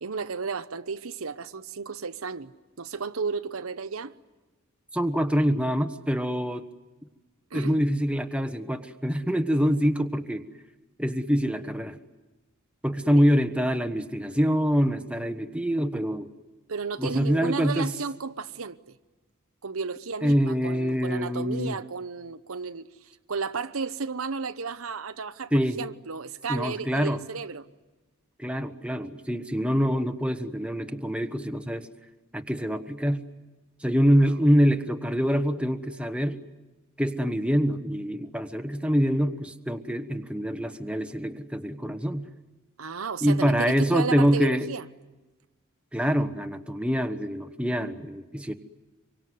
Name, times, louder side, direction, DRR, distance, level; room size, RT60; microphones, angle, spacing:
voice 1, 0.0-2.5 2.8-4.1 7.5-7.8 13.1-13.2 16.7-18.8 19.6-22.9 23.3-27.7 42.8-44.9, right 5 dB, 75° right, 0.9 m, -33 dB
voice 2, 4.9-6.6 7.5-10.4 11.0-12.0 12.8-16.3 17.0-17.9 20.2-21.8 25.5-25.8 26.5-27.2 28.4-31.9 32.3-33.2 33.8-36.4 37.0-42.3 43.2-44.7 45.9-48.5, equal, 5° right, 1.2 m, -25 dB
26.0 x 24.0 x 9.5 m
head